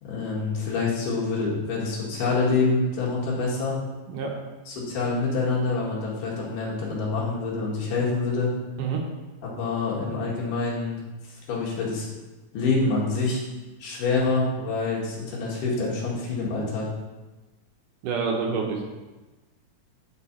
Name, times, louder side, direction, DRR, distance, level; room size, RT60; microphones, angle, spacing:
voice 1, 0.0-3.8 4.7-8.5 9.4-11.0 11.3-12.1 12.5-13.4 13.8-16.9, left 3 dB, 65° left, -5 dB, 3.2 m, -26 dB
voice 2, 18.0-18.9, right 5 dB, 75° right, 0 dB, 2.1 m, -27 dB
9.8 x 4.8 x 4.2 m, 1.2 s
omnidirectional pair, 4.4 m